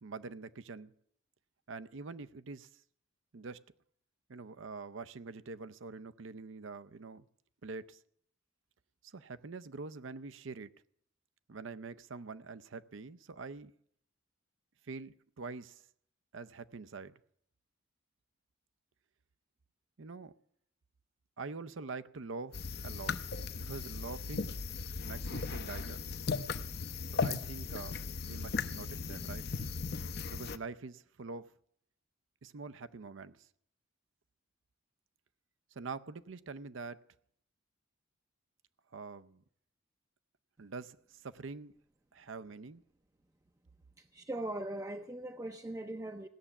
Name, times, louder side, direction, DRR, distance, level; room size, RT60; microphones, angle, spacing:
voice 1, 0.0-0.9 1.7-2.8 3.3-3.6 4.3-7.3 7.6-8.0 9.0-10.7 11.5-13.7 14.8-15.8 16.3-17.1 20.0-20.3 21.4-23.2 23.5-24.6 25.0-26.1 27.2-29.5 30.3-31.5 32.4-33.5 35.7-37.0 38.9-39.4 40.6-41.7 42.1-42.8, right 4 dB, 70° right, 0.6 m, -45 dB
sound 1, 22.5-30.6, left 4 dB, 50° left, 0.7 m, -37 dB
voice 2, 44.1-46.3, right 1 dB, 15° right, 0.5 m, -40 dB
17.0 x 7.1 x 9.9 m
head